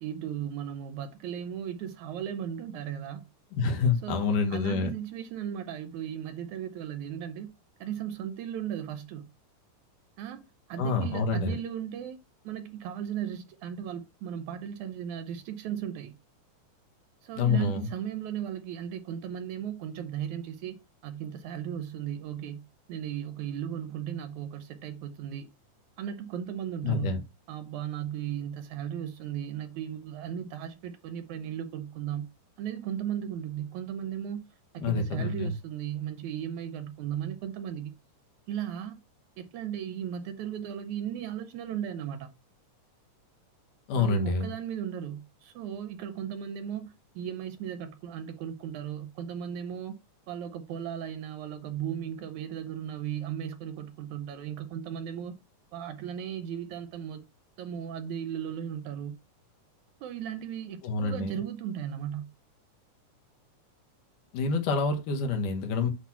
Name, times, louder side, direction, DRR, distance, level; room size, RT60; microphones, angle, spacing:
voice 1, 0.0-3.2 4.0-7.5 7.8-9.3 10.2-10.4 10.7-12.2 12.4-16.1 17.2-20.8 21.0-22.6 22.9-25.5 26.0-27.1 27.5-32.3 32.6-34.4 34.7-37.9 38.5-39.0 39.4-42.3 44.0-50.0 50.3-55.3 55.7-57.2 57.6-59.1 60.0-62.3, right 9 dB, 75° right, 2.0 m, -36 dB
voice 2, 3.6-4.9 10.8-11.5 17.4-17.9 26.8-27.2 34.8-35.5 43.9-44.5 60.8-61.4 64.3-65.9, left 4 dB, 75° left, 2.7 m, -27 dB
8.2 x 2.9 x 5.7 m
omnidirectional pair, 3.8 m